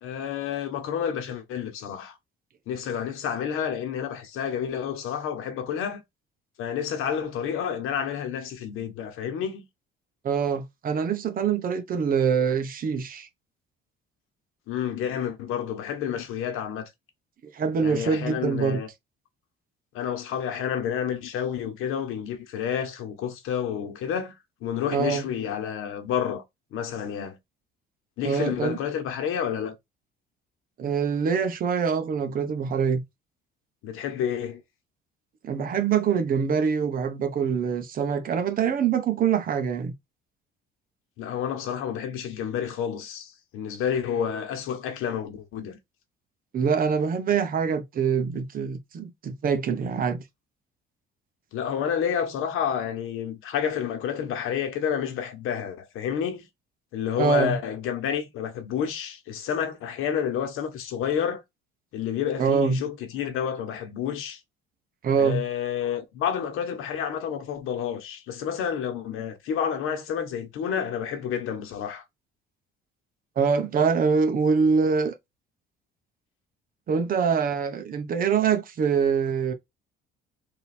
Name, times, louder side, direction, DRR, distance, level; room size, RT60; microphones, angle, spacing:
voice 1, 0.0-2.2 2.7-6.0 6.6-9.6 14.7-16.9 17.8-18.9 19.9-26.4 26.7-27.4 28.2-29.7 33.8-34.6 41.2-45.8 51.5-56.5 56.9-61.4 61.9-64.4 65.2-72.0, left 8 dB, 80° left, 1.3 m, -30 dB
voice 2, 10.2-13.3 17.5-18.8 24.9-25.3 28.2-28.8 30.8-33.0 35.4-39.9 46.5-50.2 57.2-57.6 62.4-62.8 65.0-65.4 73.4-75.1 76.9-79.5, right 6 dB, 40° right, 0.9 m, -24 dB
3.8 x 2.7 x 4.2 m
cardioid pair, 150°, 21 cm